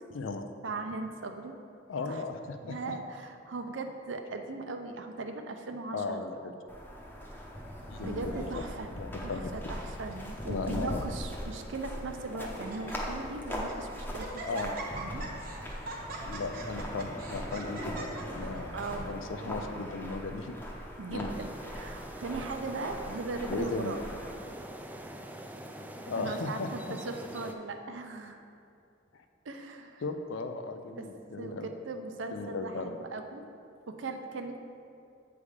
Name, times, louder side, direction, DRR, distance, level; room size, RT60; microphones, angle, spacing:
voice 1, 0.6-1.5 2.1-2.2 2.6-6.3 8.0-8.9 9.2-14.7 14.9-15.5 18.7-19.1 21.0-24.0 26.2-28.4 29.5-30.0 30.9-31.1 31.4-33.4 33.9-34.6, right 3 dB, 70° right, 5 dB, 0.5 m, -39 dB
voice 2, 1.9-2.8 5.9-6.5 7.9-8.2 8.5-9.4 10.5-11.0 14.5-14.7 16.3-18.7 19.0-20.6 21.1-21.3 23.5-23.9 26.1-27.0 30.0-31.7 32.3-33.0, left 3 dB, 80° left, 7 dB, 0.5 m, -36 dB
sound 1, 6.7-24.3, equal, 10° left, 0.8 m, -40 dB
Laughter, 7.9-8.7 9.4-9.8 10.1-10.2 10.9-11.6 12.1-12.2 12.5-13.0 13.4-13.8 14.2-19.0, right 2 dB, 50° right, 0.9 m, -42 dB
sound 2, 21.3-27.5, right 1 dB, 10° right, 0.3 m, -44 dB
8.2 x 3.5 x 4.8 m, 2.5 s
head